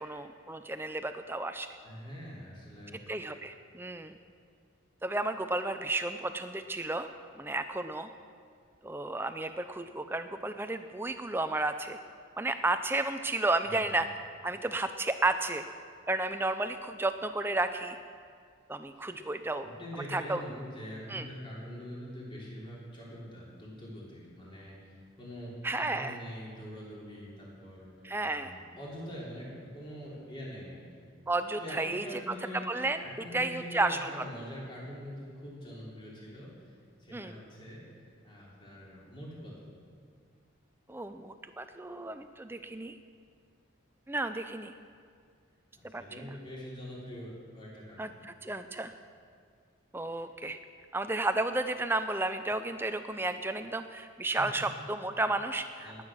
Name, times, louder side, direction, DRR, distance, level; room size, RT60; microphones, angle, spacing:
voice 1, 0.0-1.7 3.1-4.2 5.0-7.1 7.4-8.1 8.8-12.0 12.4-14.1 14.4-15.7 16.1-18.0 18.7-19.7 20.1-20.4 21.1-21.3 25.6-26.1 28.0-28.5 31.3-32.0 32.7-33.0 33.3-34.1 37.1-37.3 40.9-43.0 44.1-44.7 45.9-46.3 48.0-48.9 49.9-50.6 50.9-56.0, right 2 dB, 10° right, 9 dB, 0.4 m, -32 dB
voice 2, 1.8-3.0 13.6-14.0 19.0-19.2 19.6-31.0 31.6-39.8 45.8-48.2 54.4-54.6 55.8-56.0, equal, 25° left, -5 dB, 3.5 m, -44 dB
20.0 x 9.1 x 6.2 m, 2.1 s
head